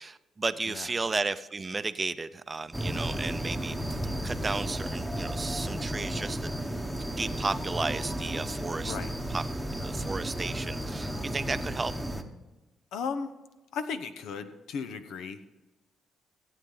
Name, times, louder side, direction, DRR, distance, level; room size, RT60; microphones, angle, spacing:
voice 1, 0.0-6.5 7.2-9.0 9.3-9.4 9.7-11.9, right 3 dB, 25° right, 13 dB, 0.5 m, -33 dB
sound 1, 2.7-12.2, right 1 dB, ahead, 1.1 m, -33 dB
voice 2, 12.9-13.3 13.7-15.4, left 5 dB, 80° left, 11 dB, 0.9 m, -35 dB
16.0 x 8.5 x 3.9 m, 1.1 s
cardioid pair, 90°, 0 cm